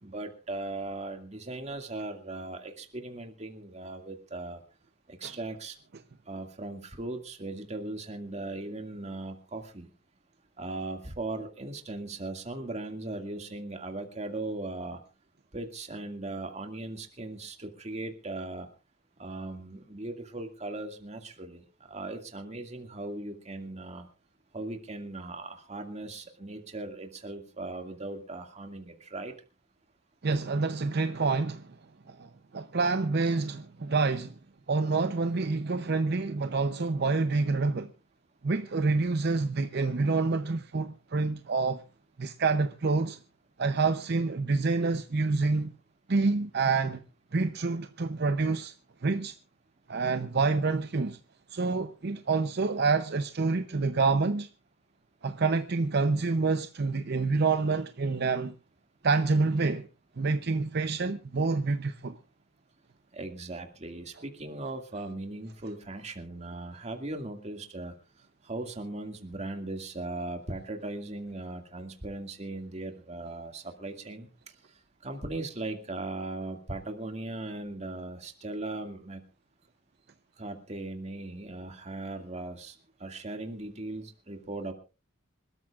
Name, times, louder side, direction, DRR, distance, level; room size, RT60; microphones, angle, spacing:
voice 1, 0.0-4.6 5.1-5.8 6.3-9.9 10.6-15.0 15.5-18.7 19.2-24.1 24.5-29.3 63.1-67.9 68.4-79.2 80.4-84.7, right 2 dB, 35° right, 2.2 m, -38 dB
voice 2, 30.2-31.8 32.1-34.3 34.7-37.9 38.4-41.8 42.2-43.2 43.6-45.7 46.1-47.0 47.3-48.7 49.0-49.3 49.9-51.2 51.5-54.5 55.2-58.5 59.0-59.9 60.2-62.2, right 3 dB, 55° right, 0.7 m, -27 dB
26.5 x 13.5 x 2.4 m
head